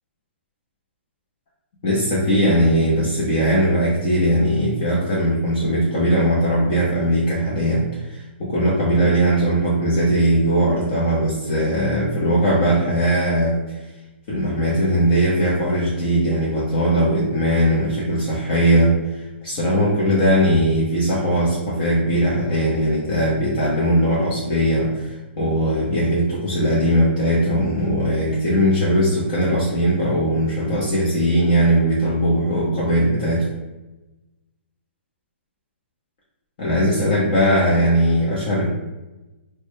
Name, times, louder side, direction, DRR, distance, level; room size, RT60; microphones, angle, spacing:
voice 1, 1.8-13.8 14.3-33.5 36.6-38.7, equal, 40° left, -7 dB, 0.8 m, -19 dB
3.2 x 2.2 x 3.1 m, 1.0 s
hypercardioid pair, 155°, 7 cm